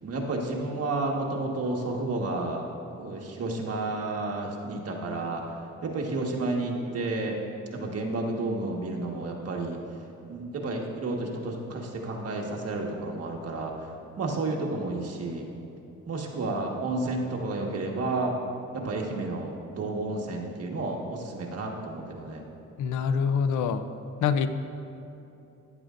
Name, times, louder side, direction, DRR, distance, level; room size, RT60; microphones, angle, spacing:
voice 1, 0.0-7.4 7.7-9.8 10.3-13.9 14.2-15.5 16.1-18.4 18.7-22.4, right 2 dB, 55° right, 0 dB, 1.6 m, -31 dB
voice 2, 22.8-23.8 24.2-24.5, left 6 dB, 75° left, 11 dB, 0.6 m, -25 dB
14.0 x 10.0 x 2.6 m, 2.9 s
cardioid pair, 90°, 30 cm